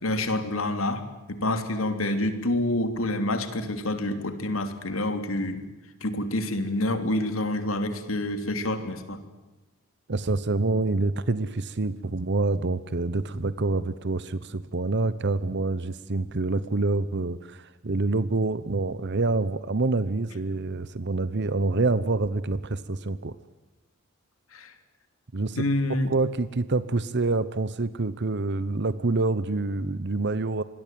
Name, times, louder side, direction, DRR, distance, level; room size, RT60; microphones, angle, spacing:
voice 1, 0.0-5.7 6.0-9.2 24.5-24.7 25.6-26.1, left 1 dB, 80° left, 9 dB, 3.2 m, -27 dB
voice 2, 10.1-23.4 25.3-25.6 26.1-30.6, right 3 dB, 55° right, 15 dB, 1.0 m, -26 dB
26.5 x 21.0 x 9.3 m, 1.1 s
head